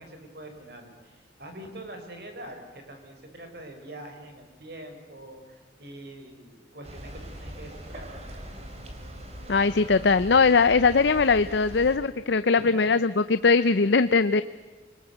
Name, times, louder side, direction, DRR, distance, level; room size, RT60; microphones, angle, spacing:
voice 1, 0.0-8.1 12.5-13.0 13.7-13.9, right 1 dB, 55° right, 5 dB, 4.5 m, -44 dB
sound 1, 6.8-12.0, equal, 35° right, 3.4 m, -41 dB
voice 2, 9.5-14.4, left 4 dB, 70° left, 13 dB, 0.6 m, -21 dB
24.5 x 20.0 x 8.1 m, 1.4 s
head